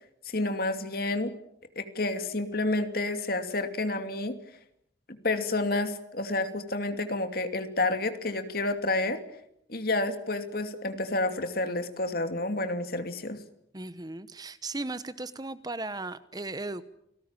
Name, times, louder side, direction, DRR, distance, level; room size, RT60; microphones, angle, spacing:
voice 1, 0.2-1.3 1.8-4.4 5.1-9.2 9.7-13.4, left 2 dB, 50° left, 8 dB, 2.7 m, -29 dB
voice 2, 13.7-16.8, right 2 dB, 20° right, 14 dB, 0.9 m, -36 dB
29.0 x 19.0 x 9.0 m, 0.77 s
head